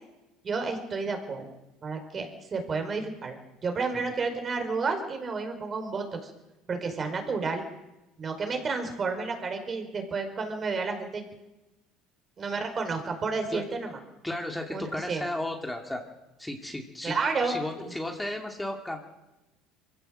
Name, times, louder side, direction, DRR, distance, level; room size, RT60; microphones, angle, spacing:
voice 1, 0.4-1.5 1.8-6.3 6.7-7.6 8.2-11.2 12.4-14.0 14.7-15.3 17.0-17.6, right 4 dB, 35° right, 5 dB, 5.0 m, -31 dB
voice 2, 14.2-16.0 16.4-17.2 17.4-19.0, left 1 dB, 5° left, 2 dB, 2.6 m, -34 dB
23.0 x 16.0 x 7.8 m, 1.0 s
supercardioid pair, 95°, 0 cm